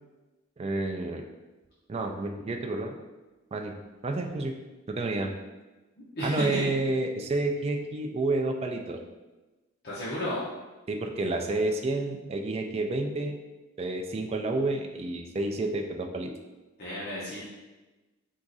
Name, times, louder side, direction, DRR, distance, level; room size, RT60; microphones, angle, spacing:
voice 1, 0.6-1.2 1.9-2.9 3.5-3.7 4.0-4.5 5.0-5.3 6.2-9.0 10.9-13.4 13.8-16.3, right 2 dB, 30° right, 2 dB, 0.4 m, -29 dB
voice 2, 6.2-6.6 9.8-10.4 16.8-17.4, left 1 dB, 50° left, -9 dB, 0.9 m, -32 dB
4.7 x 2.5 x 4.0 m, 1.1 s
head